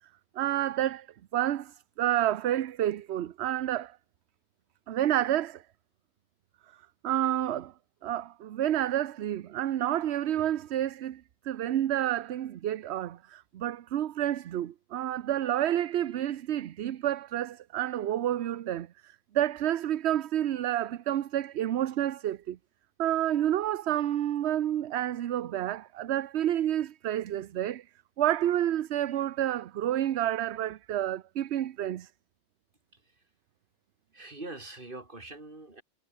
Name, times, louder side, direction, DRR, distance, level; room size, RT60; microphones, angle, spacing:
voice 1, 0.4-1.1 1.3-4.0 4.9-5.6 7.0-7.7 8.0-22.6 23.0-27.8 28.2-32.1, right 12 dB, 75° right, 1.0 m, -29 dB
voice 2, 34.1-35.8, right 2 dB, 50° right, 3.6 m, -43 dB
omnidirectional pair, 1.1 m